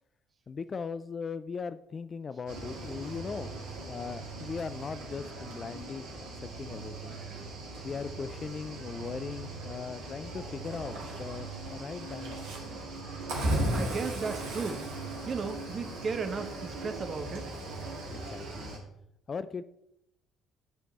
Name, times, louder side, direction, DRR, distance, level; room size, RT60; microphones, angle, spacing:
voice 1, 0.5-3.5 3.9-6.1 6.4-7.2 7.8-12.5 18.1-18.8 19.3-19.6, left 5 dB, 35° left, 13 dB, 0.3 m, -39 dB
Cricket / Waves surf, 2.5-18.8, right 2 dB, 60° right, 1.8 m, -38 dB
sound 1, 7.9-16.7, left 1 dB, 65° left, 2.0 m, -57 dB
voice 2, 13.7-14.8 15.3-17.5, right 5 dB, 35° right, 8 dB, 1.0 m, -35 dB
10.0 x 5.1 x 4.1 m, 0.80 s
figure-of-eight pair, 50°, 0 cm